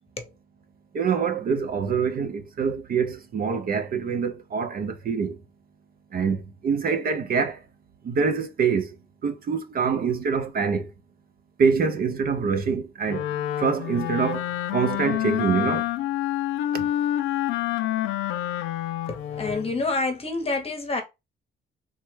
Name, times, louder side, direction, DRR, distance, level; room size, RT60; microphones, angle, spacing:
voice 1, 0.9-5.4 6.1-7.6 8.0-9.0 9.2-10.9 11.6-13.2 13.6-15.9 16.7-16.9, right 6 dB, 50° right, 0.5 m, -25 dB
Wind instrument woodwind instrument, 13.1-19.8, left 13 dB, 90° left, 0.4 m, -28 dB
voice 2, 19.1-21.0, left 3 dB, 30° left, 0.8 m, -28 dB
3.3 x 2.1 x 3.1 m
cardioid pair, 90°, 20 cm